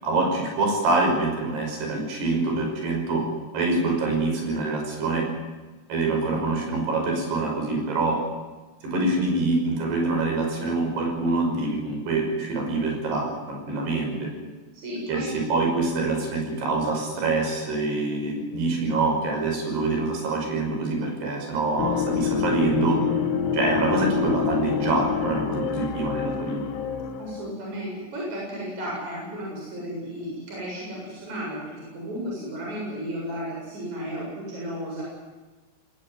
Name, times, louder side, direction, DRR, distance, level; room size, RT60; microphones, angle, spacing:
voice 1, 0.0-3.2 3.5-5.3 5.9-8.2 8.8-14.3 15.1-23.0 23.5-26.6, right 3 dB, 75° right, 2 dB, 7.8 m, -25 dB
voice 2, 14.7-15.3 27.2-35.0, equal, 45° right, -4 dB, 8.7 m, -34 dB
sound 1, 21.8-27.5, left 7 dB, 80° left, 4.0 m, -27 dB
20.5 x 19.0 x 9.7 m, 1.2 s
omnidirectional pair, 4.8 m